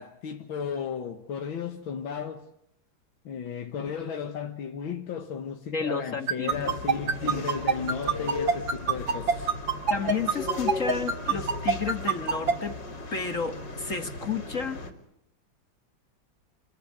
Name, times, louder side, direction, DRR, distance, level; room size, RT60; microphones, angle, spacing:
voice 1, 0.0-2.5 3.3-9.5, left 7 dB, 85° left, 2.2 m, -34 dB
voice 2, 5.7-6.7 9.9-12.8 13.1-14.8, left 5 dB, 40° left, 1.9 m, -32 dB
sound 1, 6.3-12.5, right 6 dB, 75° right, 2.6 m, -23 dB
sound 2, 6.5-14.9, left 3 dB, 65° left, 4.3 m, -36 dB
29.0 x 21.5 x 9.5 m
omnidirectional pair, 2.1 m